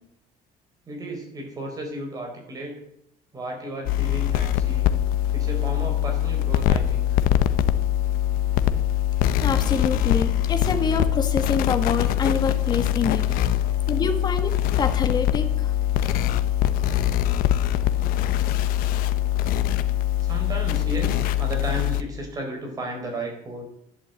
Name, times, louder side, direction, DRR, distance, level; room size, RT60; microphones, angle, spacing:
voice 1, 0.9-2.7 3.3-5.0 5.3-7.2 13.5-13.8 15.9-16.2 16.8-17.2 20.2-23.6, right 1 dB, 25° right, 2 dB, 4.4 m, -34 dB
sound 1, 3.9-22.0, left 11 dB, 70° left, 0.9 m, -23 dB
voice 2, 9.4-13.3 13.9-15.7, left 5 dB, 25° left, 6 dB, 1.8 m, -26 dB
11.5 x 10.5 x 8.3 m, 0.74 s
cardioid pair, 175°, 15 cm